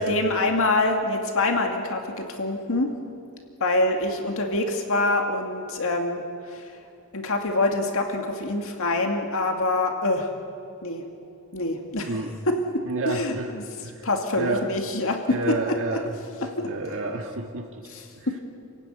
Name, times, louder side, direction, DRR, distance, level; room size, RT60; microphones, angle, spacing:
voice 1, 0.0-2.9 3.6-6.7 7.1-10.3 10.8-11.0 11.5-12.1 12.5-13.6 14.0-15.6 16.4-16.7 17.9-18.4, left 2 dB, 65° left, 3 dB, 2.3 m, -25 dB
voice 2, 12.8-13.5 13.8-14.1 14.3-14.7 15.3-17.9 18.2-18.3, right 2 dB, 60° right, 1 dB, 1.8 m, -30 dB
29.5 x 16.0 x 10.0 m, 2.5 s
head